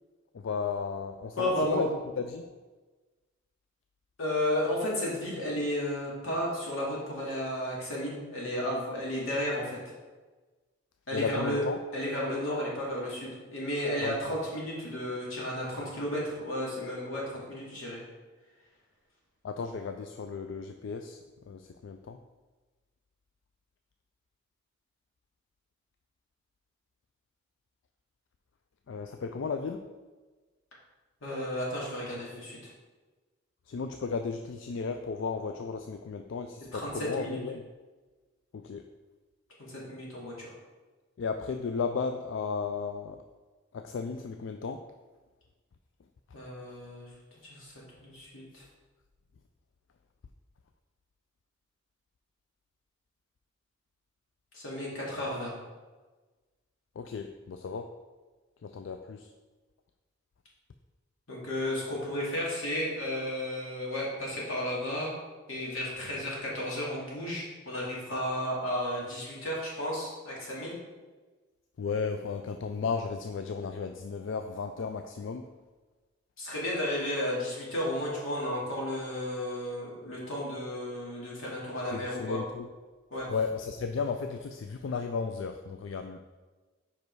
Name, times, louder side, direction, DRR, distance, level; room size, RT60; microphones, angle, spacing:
voice 1, 0.3-1.9 2.2-2.5 11.1-11.8 14.0-14.2 19.4-21.2 21.5-22.2 28.9-29.9 33.7-37.6 38.5-38.8 41.2-43.2 43.7-44.8 57.0-57.9 58.6-59.3 71.8-75.5 81.9-82.7 83.3-86.2, left 5 dB, 70° left, 6 dB, 0.3 m, -34 dB
voice 2, 1.4-1.8 4.2-9.8 11.1-11.6 11.9-18.0 31.2-32.6 36.7-37.4 39.6-40.5 46.3-47.1 47.4-47.7 48.0-48.6 54.5-55.5 61.3-65.1 65.5-70.8 76.4-82.4 83.1-83.3, left 1 dB, 90° left, -4 dB, 2.2 m, -33 dB
5.3 x 5.2 x 4.7 m, 1.3 s
head